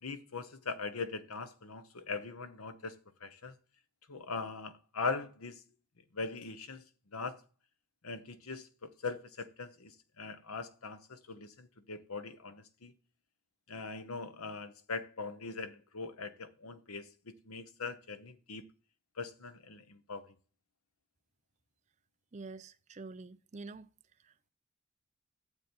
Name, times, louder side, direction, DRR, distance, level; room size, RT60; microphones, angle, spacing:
voice 1, 0.0-3.5 4.1-5.6 6.1-6.8 7.1-7.4 8.0-12.9 13.7-18.6 19.2-20.3, left 4 dB, 80° left, 1.0 m, -41 dB
voice 2, 22.3-23.9 24.2-24.5, right 3 dB, 30° right, 0.5 m, -47 dB
9.7 x 7.2 x 4.5 m
head